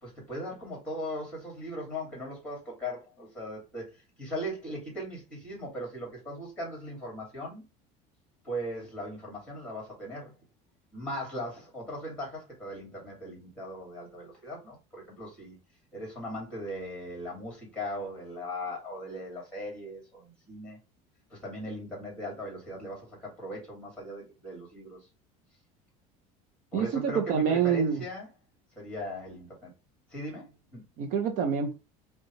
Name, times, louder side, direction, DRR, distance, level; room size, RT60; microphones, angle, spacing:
voice 1, 0.0-7.6 8.4-10.3 10.9-15.6 15.9-20.8 21.3-25.0 26.7-28.3 28.8-29.7 30.1-30.8, equal, 5° left, 2.2 m, -39 dB
voice 2, 26.7-28.0 31.0-31.7, right 7 dB, 50° right, 0.6 m, -26 dB
5.3 x 2.3 x 3.0 m
cardioid pair, 170°, 17 cm